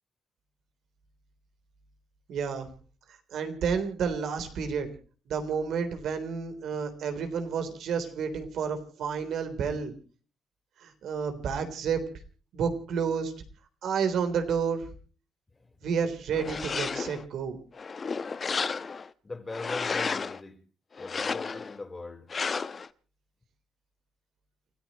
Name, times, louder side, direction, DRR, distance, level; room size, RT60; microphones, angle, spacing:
voice 1, 2.3-2.7 3.3-4.9 5.3-9.9 10.8-12.0 12.5-13.3 13.8-14.9 15.8-17.6, right 6 dB, 75° right, 3.7 m, -30 dB
sound 1, 16.3-17.2 17.7-19.1 19.5-20.4 21.0-21.8 22.3-22.9, left 5 dB, 45° left, 1.1 m, -32 dB
voice 2, 19.2-20.6 21.0-22.3, left 3 dB, 25° left, 4.4 m, -40 dB
29.5 x 14.5 x 3.1 m
cardioid pair, 65°, 0 cm